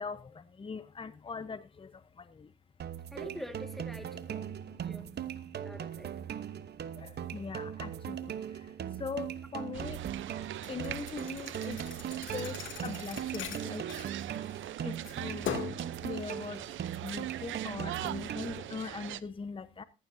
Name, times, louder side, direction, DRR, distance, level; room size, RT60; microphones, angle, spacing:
voice 1, 0.0-1.9 2.3-2.5 7.0-8.3 9.0-10.0 10.7-11.8 12.3-14.1 14.8-15.5 16.0-16.6 17.0-19.8, left 5 dB, 25° left, 0.9 m, -41 dB
sound 1, 2.8-18.8, right 9 dB, 55° right, 1.0 m, -39 dB
voice 2, 3.1-5.2 5.6-6.2, equal, ahead, 1.8 m, -46 dB
sound 2, 9.7-19.2, right 13 dB, 75° right, 0.7 m, -42 dB
Thump thud, 10.6-14.7 15.0-15.9, left 7 dB, 75° left, 2.6 m, -40 dB
14.5 x 14.5 x 2.7 m
cardioid pair, 90°, 20 cm